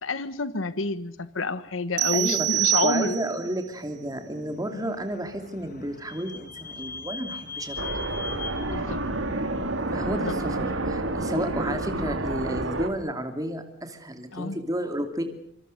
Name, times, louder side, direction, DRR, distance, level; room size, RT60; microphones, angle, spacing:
voice 1, 0.0-3.2 4.8-4.9 8.7-9.0 10.1-10.3 14.3-14.6, left 3 dB, 90° left, 13 dB, 1.3 m, -28 dB
sound 1, 2.0-3.5, right 16 dB, 60° right, 1.2 m, -25 dB
voice 2, 2.1-8.2 9.9-15.2, right 1 dB, 20° right, 6 dB, 2.7 m, -32 dB
Vehicle / Squeak, 4.7-10.3, left 4 dB, 45° left, 2.3 m, -41 dB
sound 2, 7.8-12.9, right 2 dB, 85° right, 3.4 m, -29 dB
26.5 x 26.5 x 6.7 m, 0.65 s
head